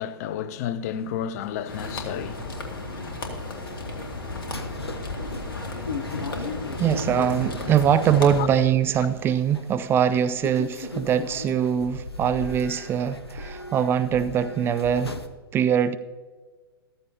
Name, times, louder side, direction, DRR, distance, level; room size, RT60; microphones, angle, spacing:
voice 1, 0.0-2.5 3.5-3.7 4.6-4.7 8.4-8.5, left 9 dB, 40° left, 0.5 m, -31 dB
sound 1, 0.6-15.3, left 3 dB, 80° left, 0.9 m, -38 dB
sound 2, 1.7-8.5, left 2 dB, 65° left, 2.0 m, -34 dB
voice 2, 6.8-15.2 15.5-16.0, right 8 dB, 20° right, 0.4 m, -22 dB
14.0 x 13.5 x 2.8 m
figure-of-eight pair, 105°, 13 cm